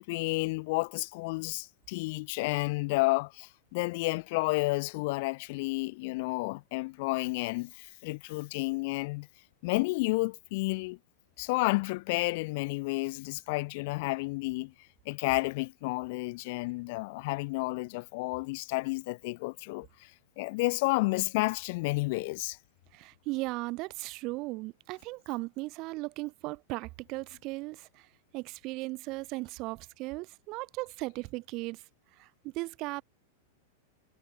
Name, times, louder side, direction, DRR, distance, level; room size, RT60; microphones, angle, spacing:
voice 1, 0.0-9.3 9.6-11.0 11.4-14.7 15.1-20.1 20.4-22.6, left 25 dB, 60° left, 3.7 m, -31 dB
voice 2, 22.9-27.9 28.3-31.8 32.2-33.0, right 23 dB, 45° right, 2.3 m, -37 dB
hypercardioid pair, 110°, 0 cm